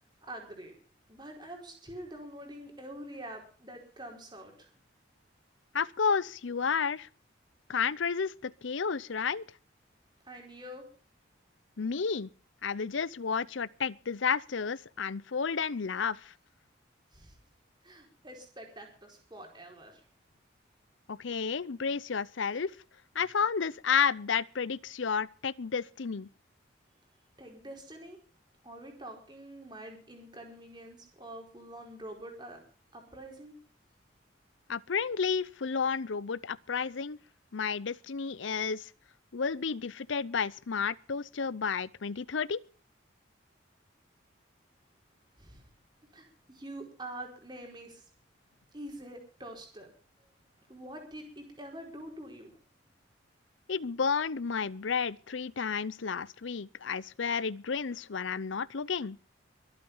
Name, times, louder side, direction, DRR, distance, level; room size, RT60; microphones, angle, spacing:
voice 1, 0.2-0.7 1.1-4.7 10.2-10.8 17.1-17.4 17.8-20.0 27.4-28.2 28.6-32.6 32.9-33.6 45.4-45.6 46.1-48.0 48.7-49.9 50.7-52.5, right 1 dB, 20° right, 4.8 m, -46 dB
voice 2, 5.7-7.1 7.7-9.4 11.8-12.3 12.6-16.3 21.1-22.7 23.1-26.3 34.7-37.2 37.5-38.9 39.3-42.6 53.7-59.2, left 6 dB, 75° left, 0.6 m, -31 dB
23.0 x 8.8 x 5.5 m
head